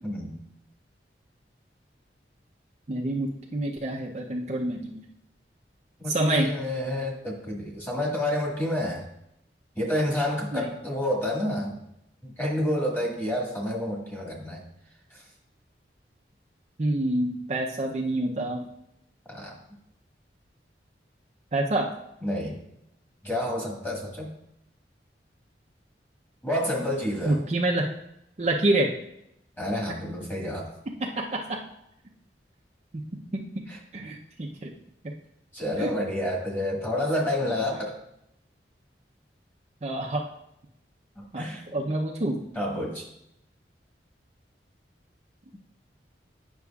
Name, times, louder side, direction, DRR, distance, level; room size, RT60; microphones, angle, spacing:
voice 1, 0.0-0.4 6.0-9.1 9.7-11.8 12.2-14.6 15.1-15.2 19.3-19.6 22.2-22.6 23.2-24.3 26.4-27.4 29.6-30.7 33.7-33.8 35.5-37.9 41.2-41.6 42.5-43.1, left 1 dB, 10° left, -3 dB, 1.6 m, -29 dB
voice 2, 2.9-5.0 6.1-6.5 10.5-10.7 16.8-18.7 21.5-21.9 27.3-27.9 28.4-28.9 30.9-31.6 33.3-33.4 33.9-34.7 35.0-35.1 35.8-35.9 39.8-40.2 41.3-41.5 41.7-42.4, right 1 dB, 40° right, -1 dB, 0.6 m, -27 dB
9.4 x 6.1 x 2.3 m, 0.80 s
head